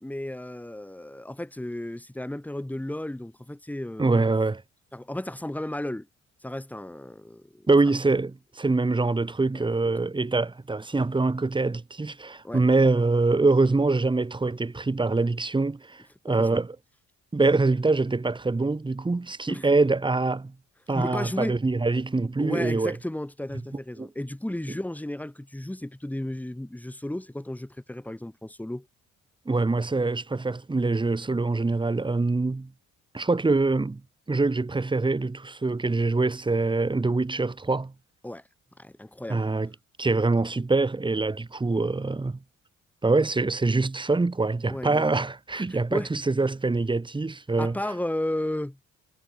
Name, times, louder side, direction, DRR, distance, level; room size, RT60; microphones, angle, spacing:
voice 1, 0.0-4.3 4.9-6.1 6.4-7.7 9.5-9.7 12.4-12.6 16.3-16.6 19.5-19.7 20.9-21.6 22.4-28.9 38.2-38.4 38.8-39.5 44.7-45.3 45.5-46.1 47.6-48.8, left 1 dB, 5° left, 2.0 m, -34 dB
voice 2, 4.0-4.6 7.7-16.8 17.3-20.5 20.9-23.0 24.0-24.1 29.4-32.7 33.1-34.0 34.3-37.9 39.3-39.7 40.0-42.4 43.0-47.8, right 3 dB, 15° right, 1.5 m, -24 dB
cardioid pair, 90°, 30 cm